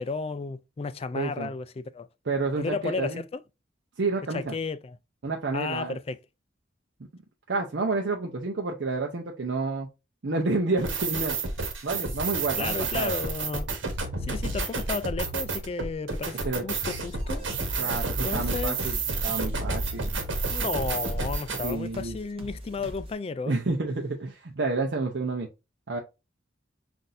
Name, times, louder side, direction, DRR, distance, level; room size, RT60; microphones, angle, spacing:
voice 1, 0.0-2.1 2.6-3.4 4.3-5.0 5.5-6.2 12.6-13.7 14.2-17.4 18.2-19.0 20.5-23.6, left 4 dB, 30° left, 0.3 m, -33 dB
voice 2, 1.1-1.5 2.3-3.2 4.0-4.5 5.2-6.0 7.5-9.9 10.2-11.4 11.8-13.1 16.4-16.6 17.8-20.1 21.6-22.2 23.5-25.5 25.9-26.0, right 3 dB, 65° right, 0.7 m, -29 dB
sound 1, 10.8-21.7, right 3 dB, 85° right, 1.2 m, -30 dB
sound 2, 17.2-23.1, equal, 30° right, 0.9 m, -42 dB
5.8 x 2.6 x 2.6 m
head